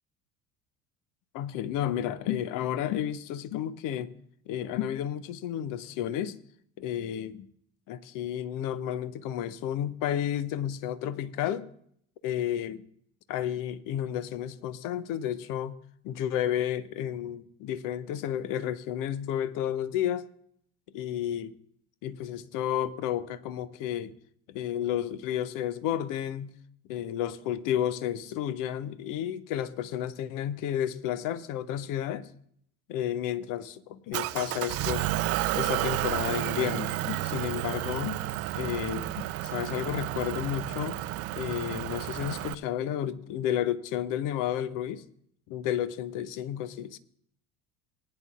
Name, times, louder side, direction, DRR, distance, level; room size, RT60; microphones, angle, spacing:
voice 1, 1.3-4.1 4.5-6.4 6.8-7.5 7.9-11.6 12.2-12.8 13.3-15.8 16.0-20.2 20.9-21.5 22.0-24.1 24.5-26.5 26.9-32.3 32.9-35.1 35.5-38.2 38.5-41.0 41.3-45.0 45.5-47.0, left 10 dB, 45° left, 15 dB, 0.8 m, -32 dB
Motor vehicle (road) / Engine, 34.1-42.5, right 15 dB, 35° right, 0.4 m, -31 dB
19.0 x 9.6 x 2.5 m, 0.67 s
figure-of-eight pair, 65°, 44 cm